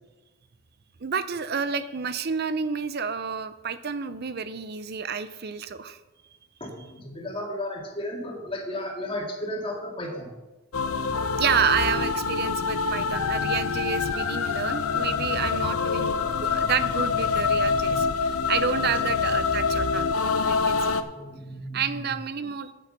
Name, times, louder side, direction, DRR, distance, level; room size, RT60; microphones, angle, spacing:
voice 1, 1.0-6.0 11.4-20.1 20.4-21.0 21.7-22.7, right 6 dB, 45° right, 13 dB, 0.6 m, -29 dB
voice 2, 6.6-10.3 15.5-15.6 18.8-18.9 21.1-22.1, left 1 dB, 25° left, 0 dB, 2.0 m, -34 dB
sound 1, 10.7-21.0, left 5 dB, 75° left, 0.7 m, -25 dB
8.4 x 8.0 x 6.7 m, 1.2 s
head